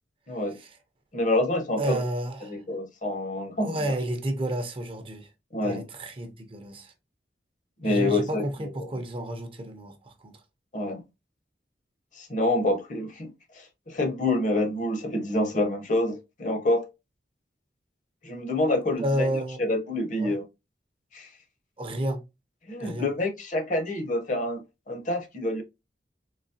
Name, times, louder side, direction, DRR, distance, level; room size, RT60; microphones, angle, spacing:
voice 1, 0.3-0.6 1.1-2.0 2.4-3.9 5.5-5.9 7.8-8.9 10.7-11.0 12.2-16.8 18.2-19.3 19.6-20.4 21.1-21.3 22.7-25.6, left 1 dB, 45° left, 0.8 m, -27 dB
voice 2, 1.8-2.6 3.6-5.3 5.6-6.9 7.8-10.3 19.0-19.6 20.2-20.4 21.8-22.2 22.8-23.1, right 1 dB, 30° right, 0.6 m, -31 dB
3.9 x 2.8 x 2.7 m
head